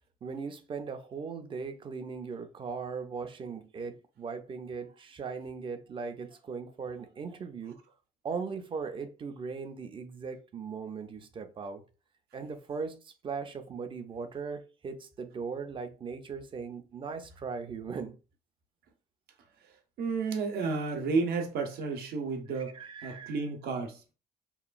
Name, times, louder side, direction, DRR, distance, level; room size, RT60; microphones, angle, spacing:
voice 1, 0.2-7.8 8.2-11.8 12.3-18.2 22.5-23.4, right 5 dB, 30° right, 0.4 m, -39 dB
voice 2, 20.0-24.0, right 4 dB, 70° right, 0.7 m, -32 dB
2.9 x 2.2 x 2.4 m
cardioid pair, 110°, 17 cm